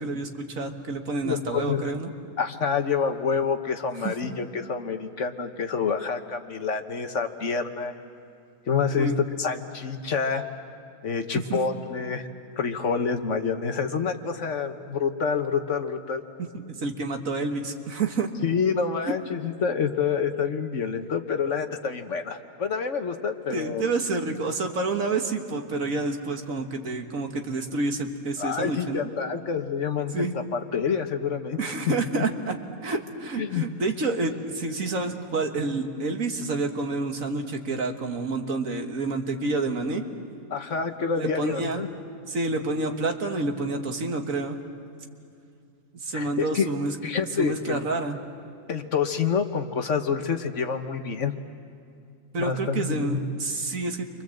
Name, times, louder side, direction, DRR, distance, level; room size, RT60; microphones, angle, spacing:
voice 1, 0.0-2.1 4.0-4.1 8.9-9.2 11.5-11.6 16.4-16.5 16.8-18.3 23.5-29.1 30.1-30.3 31.6-32.6 32.8-40.0 41.2-41.8 42.3-44.6 46.0-47.0 47.4-48.2 52.3-54.1, right 3 dB, 65° right, 4 dB, 1.9 m, -28 dB
voice 2, 1.2-1.9 2.4-7.9 8.7-10.4 11.0-12.3 12.6-16.2 18.4-23.8 28.4-31.9 33.4-33.6 40.5-41.9 46.1-46.7 47.0-47.8 48.7-51.3 52.4-53.2, left 6 dB, 55° left, 7 dB, 1.4 m, -27 dB
29.5 x 24.5 x 7.8 m, 2.4 s
omnidirectional pair, 1.6 m